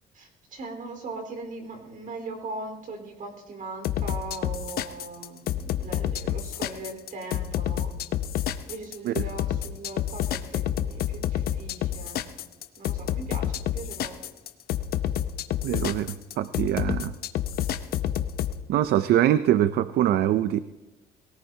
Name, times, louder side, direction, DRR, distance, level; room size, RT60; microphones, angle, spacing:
voice 1, 0.1-7.9 8.7-12.3 12.7-14.3, right 3 dB, 50° right, 4 dB, 4.2 m, -39 dB
sound 1, 3.8-18.5, left 11 dB, 65° left, 0.8 m, -28 dB
voice 2, 15.6-17.1 18.7-20.6, right 12 dB, 70° right, 13 dB, 0.6 m, -23 dB
22.5 x 18.0 x 2.8 m, 1.1 s
cardioid pair, 110°, 17 cm